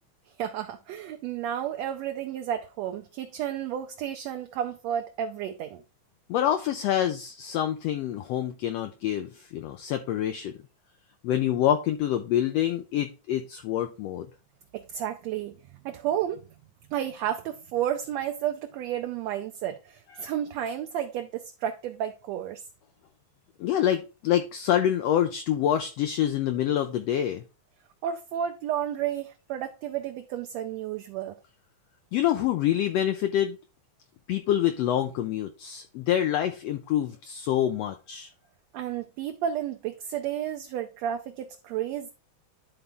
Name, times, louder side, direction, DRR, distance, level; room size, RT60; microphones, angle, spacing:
voice 1, 0.4-5.8 14.7-16.5 16.9-22.6 28.0-31.4 38.7-42.1, right 10 dB, 75° right, 1.6 m, -32 dB
voice 2, 6.3-10.5 11.2-14.3 20.2-20.3 23.6-27.4 32.1-33.6 34.3-38.3, left 11 dB, 80° left, 1.4 m, -26 dB
11.0 x 4.0 x 3.5 m
omnidirectional pair, 3.5 m